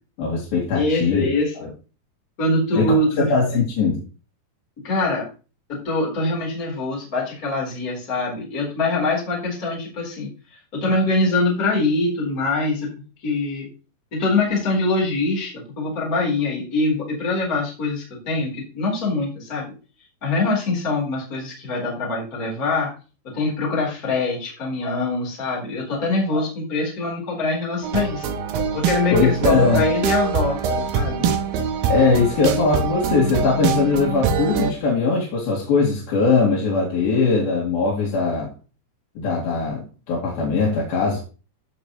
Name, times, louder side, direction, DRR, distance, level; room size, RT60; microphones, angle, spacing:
voice 1, 0.2-1.3 1.6-1.7 2.7-4.0 29.1-29.9 31.9-38.5 39.2-41.2, left 4 dB, 65° left, -4 dB, 4.2 m, -20 dB
voice 2, 0.7-1.7 2.4-3.3 4.8-5.3 5.7-10.3 10.7-12.9 13.2-13.7 14.1-19.7 20.2-22.9 23.2-28.3 28.7-31.3, left 2 dB, 20° left, -3 dB, 4.1 m, -23 dB
sound 1, 27.8-34.7, right 6 dB, 70° right, 2.6 m, -24 dB
15.5 x 6.1 x 3.2 m, 0.34 s
omnidirectional pair, 4.7 m